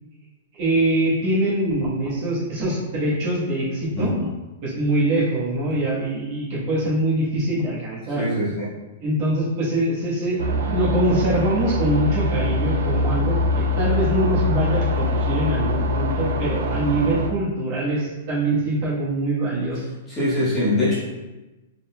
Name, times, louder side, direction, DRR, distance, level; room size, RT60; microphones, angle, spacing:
voice 1, 0.5-4.2 4.6-8.2 9.0-20.0, right 1 dB, 35° right, -7 dB, 1.3 m, -23 dB
voice 2, 3.9-4.3 8.1-8.7 20.1-21.0, left 1 dB, 15° left, -10 dB, 1.3 m, -23 dB
sound 1, 10.4-17.3, left 2 dB, 80° right, 0.6 m, -23 dB
4.0 x 3.8 x 2.3 m, 1.1 s
hypercardioid pair, 165°, 0 cm